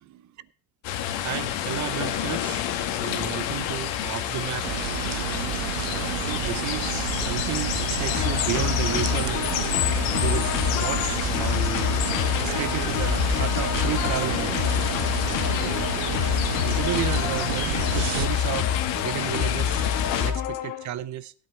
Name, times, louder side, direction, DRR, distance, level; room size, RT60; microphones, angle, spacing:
voice 1, 0.1-0.5 1.2-2.7 3.0-4.7 6.1-9.9 10.2-12.0 12.4-14.8 15.5-15.7 16.6-19.9 20.1-21.3, right 12 dB, 40° right, 0.7 m, -33 dB
sound 1, 0.8-20.3, left 10 dB, 70° left, 1.8 m, -29 dB
sound 2, 4.6-18.2, right 14 dB, 75° right, 1.1 m, -31 dB
sound 3, 8.1-20.9, left 8 dB, 45° left, 1.2 m, -28 dB
16.0 x 9.0 x 4.4 m
supercardioid pair, 120°, 46 cm